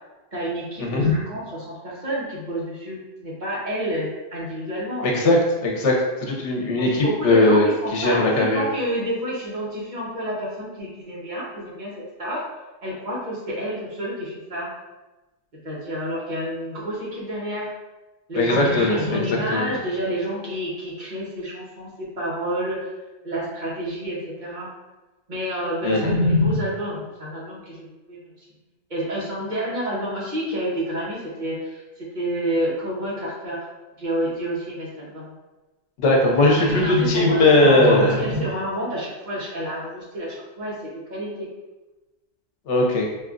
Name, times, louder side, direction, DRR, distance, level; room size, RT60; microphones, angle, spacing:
voice 1, 0.3-5.1 6.7-11.9 12.2-12.4 12.8-14.7 15.6-17.7 18.3-22.8 23.2-24.7 25.3-28.3 28.9-33.7 34.0-35.2 36.4-41.5, equal, 40° right, -7 dB, 1.1 m, -28 dB
voice 2, 5.0-5.4 5.6-7.7 7.9-8.6 18.3-19.2 19.5-19.7 25.8-26.1 36.0-38.2 42.7-43.1, left 2 dB, 80° left, -1 dB, 1.0 m, -19 dB
4.6 x 2.4 x 2.5 m, 1.1 s
omnidirectional pair, 1.2 m